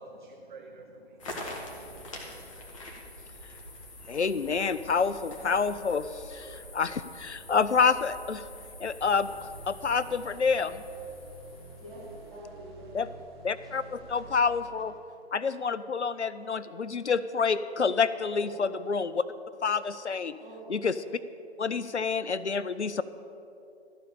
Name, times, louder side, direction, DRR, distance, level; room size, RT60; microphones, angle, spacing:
voice 1, 0.0-2.5, right 2 dB, 45° right, 4 dB, 0.7 m, -50 dB
sound 1, 1.2-12.4, left 1 dB, 30° left, 1.5 m, -45 dB
voice 2, 4.1-8.4 8.8-9.3 9.7-10.8 12.9-13.1 13.4-14.9 15.3-19.2 19.6-20.3 20.7-21.0 21.6-23.0, left 5 dB, 90° left, 15 dB, 0.5 m, -28 dB
sound 2, 9.0-15.5, right 2 dB, 20° right, 1.3 m, -50 dB
voice 3, 11.8-12.9 13.6-13.7 14.1-14.2 14.8-14.9 18.3-18.5 20.4-20.7, right 1 dB, ahead, -13 dB, 2.8 m, -46 dB
13.5 x 5.4 x 6.8 m, 2.8 s
figure-of-eight pair, 140°, 33 cm